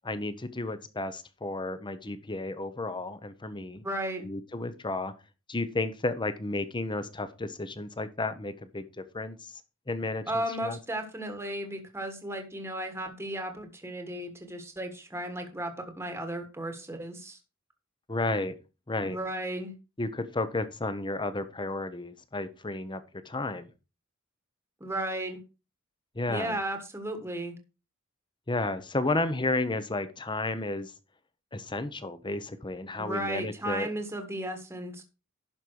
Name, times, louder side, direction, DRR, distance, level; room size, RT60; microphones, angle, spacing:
voice 1, 0.0-3.8 4.2-5.1 5.5-9.5 9.9-10.2 10.6-10.8 18.1-18.6 18.9-19.2 20.0-23.7 26.1-26.6 28.5-30.9 31.5-33.9, left 2 dB, 20° left, 12 dB, 0.9 m, -32 dB
voice 2, 3.8-4.3 10.3-17.4 19.0-19.7 24.8-25.4 26.3-27.5 33.0-35.0, right 1 dB, 10° right, 5 dB, 1.4 m, -35 dB
11.5 x 5.4 x 4.6 m, 0.30 s
head